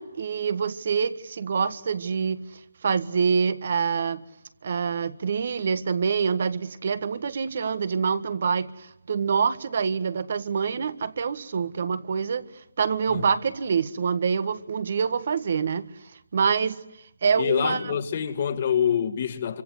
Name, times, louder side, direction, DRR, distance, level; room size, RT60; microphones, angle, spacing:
voice 1, 0.0-2.4 2.8-4.2 4.6-12.5 12.8-15.9 16.3-16.8 17.2-18.0, right 6 dB, 55° right, 1.6 m, -26 dB
voice 2, 17.4-19.6, left 8 dB, 45° left, 2.3 m, -26 dB
29.0 x 25.5 x 8.1 m
hypercardioid pair, 155°, 0 cm